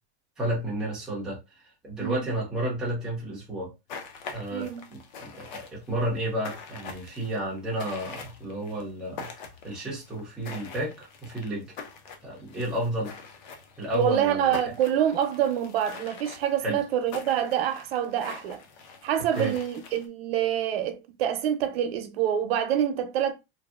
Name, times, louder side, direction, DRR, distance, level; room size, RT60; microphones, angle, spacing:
voice 1, 0.4-1.4 1.8-3.7 4.3-9.3 9.6-11.7 12.2-13.1 13.8-14.6 16.6-16.8 19.4-19.5, right 1 dB, ahead, 0.4 m, -31 dB
Gravel Steps, 3.9-20.1, left 5 dB, 45° left, 0.5 m, -44 dB
voice 2, 4.5-4.8 13.9-18.6 19.0-23.3, right 10 dB, 65° right, 0.6 m, -26 dB
2.6 x 2.4 x 2.3 m
supercardioid pair, 175°, 32 cm